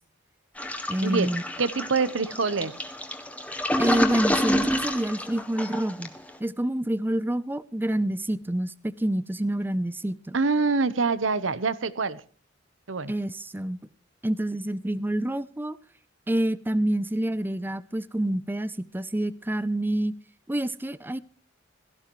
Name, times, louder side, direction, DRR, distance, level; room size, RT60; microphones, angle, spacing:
Toilet flush, 0.6-6.3, left 1 dB, 10° left, 1.7 m, -28 dB
voice 1, 0.9-1.4 3.8-6.1 6.4-10.4 13.1-13.8 14.2-15.8 16.3-20.1 20.5-21.2, right 1 dB, 10° right, 0.5 m, -27 dB
voice 2, 1.6-2.7 10.3-12.2 12.9-13.1, right 4 dB, 80° right, 1.0 m, -25 dB
17.0 x 14.0 x 3.1 m
head